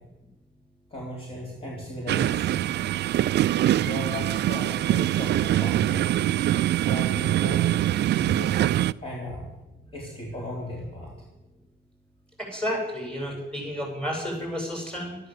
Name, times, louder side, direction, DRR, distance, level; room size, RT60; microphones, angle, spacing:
voice 1, 0.9-2.6 3.8-6.1 6.8-7.7 8.1-9.5 9.9-11.1 12.8-12.9, left 1 dB, 25° left, -3 dB, 4.3 m, -36 dB
sound 1, 2.1-8.9, right 13 dB, 60° right, 0.4 m, -23 dB
voice 2, 12.4-15.2, equal, 5° left, 0 dB, 7.6 m, -31 dB
13.0 x 12.5 x 7.7 m, 0.97 s
cardioid pair, 90°, 20 cm